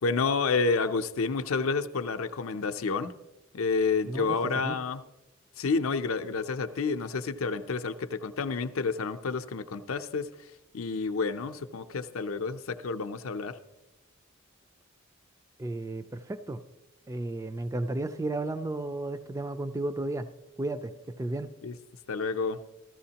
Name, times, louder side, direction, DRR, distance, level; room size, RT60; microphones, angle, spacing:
voice 1, 0.0-3.1 3.5-5.0 5.6-10.3 10.7-13.6 21.6-21.7 22.1-22.6, left 4 dB, 70° left, 7 dB, 0.6 m, -29 dB
voice 2, 4.1-4.4 4.6-4.8 15.6-16.6 17.1-20.3 20.6-21.5, right 2 dB, 15° right, 11 dB, 0.3 m, -33 dB
14.0 x 14.0 x 2.9 m, 1.0 s
head